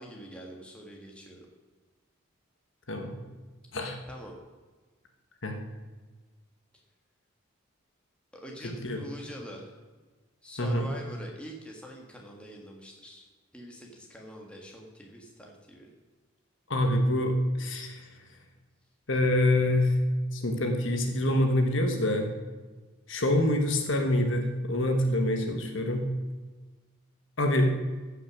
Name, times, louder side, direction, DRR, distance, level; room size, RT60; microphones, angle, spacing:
voice 1, 0.0-1.5 4.1-4.4 8.3-9.7 10.4-13.3 13.5-15.9, equal, 5° left, 0 dB, 1.6 m, -44 dB
voice 2, 2.9-3.2 3.7-4.0 5.4-5.6 8.8-9.0 10.6-10.9 16.7-18.0 19.1-20.0 20.3-22.3 23.1-26.1 27.4-27.7, left 1 dB, 60° left, 4 dB, 1.4 m, -26 dB
14.5 x 5.9 x 6.2 m, 1.3 s
head